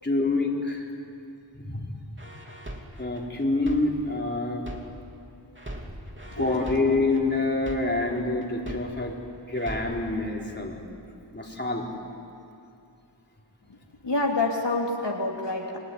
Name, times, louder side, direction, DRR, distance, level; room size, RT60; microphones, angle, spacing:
voice 1, 0.0-0.9 1.5-1.9 3.0-4.6 5.4-5.5 6.3-9.2 9.5-10.8 11.3-11.9, left 2 dB, 25° left, -2 dB, 4.2 m, -27 dB
sound 1, 2.2-5.2 5.6-9.2 9.6-10.2, right 1 dB, 25° right, 3.1 m, -40 dB
voice 2, 14.0-15.8, left 2 dB, 65° left, -1 dB, 3.1 m, -27 dB
28.0 x 20.5 x 9.7 m, 2.5 s
wide cardioid pair, 60°, 45 cm